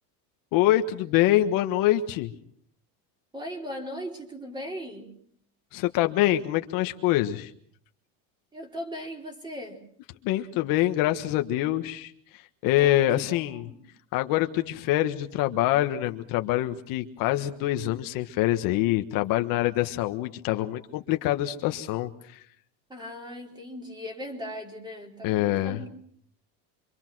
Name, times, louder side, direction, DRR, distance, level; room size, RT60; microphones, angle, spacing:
voice 1, 0.5-2.3 5.7-7.5 10.2-13.7 14.1-22.4 25.2-25.8, left 14 dB, 60° left, 7 dB, 1.6 m, -25 dB
voice 2, 3.3-5.1 8.5-9.8 12.7-13.8 22.9-25.9, equal, 10° right, 3 dB, 4.2 m, -38 dB
26.0 x 26.0 x 6.2 m, 0.63 s
cardioid pair, 150°, 39 cm